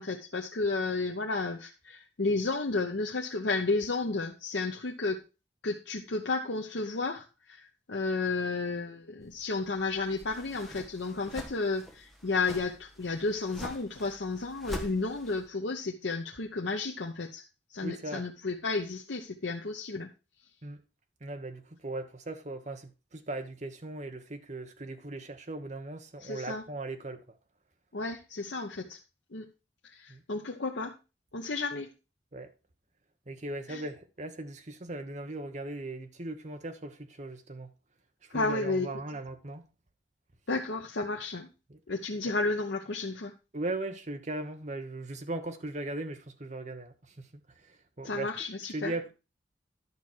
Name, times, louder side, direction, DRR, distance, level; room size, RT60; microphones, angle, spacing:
voice 1, 0.0-5.2 5.6-17.4 17.7-20.1 26.2-26.6 27.9-29.0 29.3-29.5 29.8-31.0 31.3-31.9 33.7-33.8 38.3-38.9 40.5-41.5 41.9-43.3 48.0-48.9, left 3 dB, 75° left, 0.9 m, -32 dB
sound 1, 9.2-15.5, equal, ahead, 1.4 m, -46 dB
voice 2, 17.8-18.2 20.6-20.8 21.2-27.2 30.1-30.2 32.3-32.5 33.3-37.7 38.3-39.6 41.7-41.8 43.5-47.3 48.0-48.3 48.7-49.1, right 2 dB, 40° right, 1.1 m, -38 dB
11.5 x 6.0 x 4.5 m
head